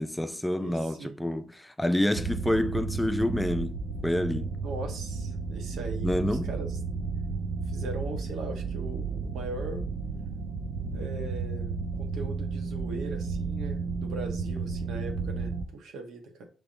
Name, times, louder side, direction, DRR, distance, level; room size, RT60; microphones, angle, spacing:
voice 1, 0.0-3.8 4.0-4.5 6.0-6.5, left 1 dB, 5° left, 0.3 m, -28 dB
voice 2, 0.6-1.2 4.6-6.8 7.7-9.9 10.9-16.4, right 3 dB, 80° right, 1.0 m, -40 dB
sound 1, 2.1-15.6, right 4 dB, 60° right, 0.6 m, -33 dB
5.7 x 3.3 x 2.6 m
cardioid pair, 90°, 0 cm